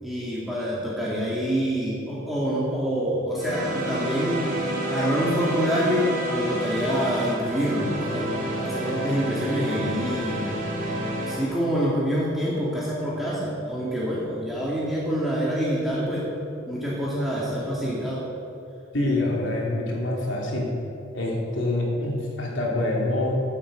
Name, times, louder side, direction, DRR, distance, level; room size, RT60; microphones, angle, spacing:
voice 1, 0.0-4.4 4.9-10.5 11.3-16.3 16.7-18.3, equal, ahead, -8 dB, 2.2 m, -26 dB
sound 1, 3.3-11.4, right 1 dB, 45° right, 2.9 m, -29 dB
voice 2, 18.9-20.7 21.1-23.3, left 2 dB, 70° left, -3 dB, 3.4 m, -26 dB
16.0 x 8.6 x 6.4 m, 2.7 s
head